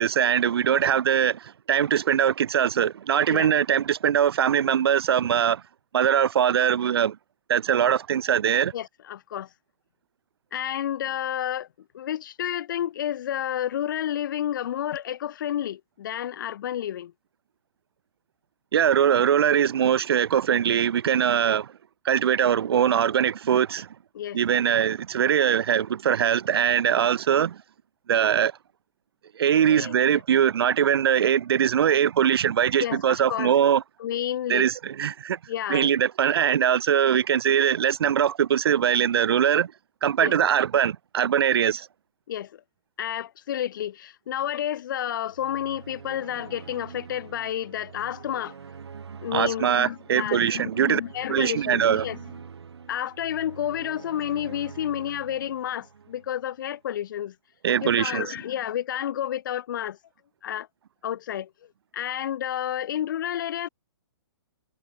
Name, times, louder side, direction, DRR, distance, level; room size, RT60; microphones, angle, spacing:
voice 1, 0.0-5.6 5.9-7.2 7.5-8.7 18.7-21.7 22.0-23.9 24.3-27.6 28.1-28.5 29.4-33.8 34.5-35.4 35.7-39.7 40.0-41.9 49.3-51.0 51.3-52.0 57.6-58.3, right 9 dB, 70° right, 0.5 m, -22 dB
voice 2, 8.7-9.5 10.5-11.7 11.9-17.1 24.1-24.4 29.6-30.2 32.8-33.5 34.0-34.7 35.5-35.9 40.2-40.3 42.3-42.6 43.0-48.6 49.2-52.2 52.9-57.3 57.8-60.0 60.4-60.7 61.0-61.5 61.9-63.7, left 11 dB, 50° left, 0.8 m, -30 dB
sound 1, 45.3-56.6, right 6 dB, 85° right, 2.8 m, -45 dB
hypercardioid pair, 155°, 13 cm